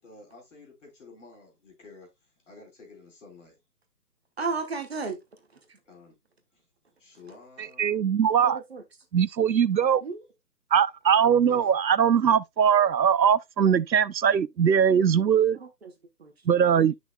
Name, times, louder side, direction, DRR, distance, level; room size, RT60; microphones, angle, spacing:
voice 1, 0.0-3.6 5.8-6.2 6.5-6.7 7.0-8.1 11.5-11.7, left 3 dB, 45° left, 4.2 m, -51 dB
voice 2, 4.4-5.2 5.7-5.8 8.4-8.8 10.0-10.2 15.5-15.9 16.2-16.3, right 4 dB, 40° right, 1.1 m, -33 dB
voice 3, 7.8-8.6 9.1-10.0 10.7-15.6 16.5-16.9, right 8 dB, 85° right, 0.6 m, -21 dB
9.9 x 6.1 x 2.2 m
figure-of-eight pair, 145°, 50 cm